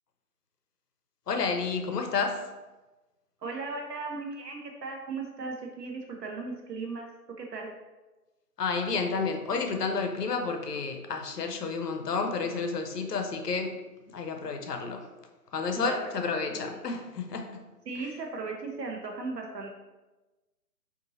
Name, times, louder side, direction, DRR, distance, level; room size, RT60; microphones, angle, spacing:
voice 1, 1.3-2.4 8.6-13.8 14.1-15.0 15.5-17.5 17.9-18.1, left 4 dB, 75° left, 5 dB, 0.7 m, -30 dB
voice 2, 3.4-7.1 7.4-7.7 15.7-16.3 17.9-19.7, right 3 dB, 85° right, 1 dB, 0.7 m, -37 dB
3.8 x 2.6 x 2.7 m, 1.1 s
hypercardioid pair, 170°, 48 cm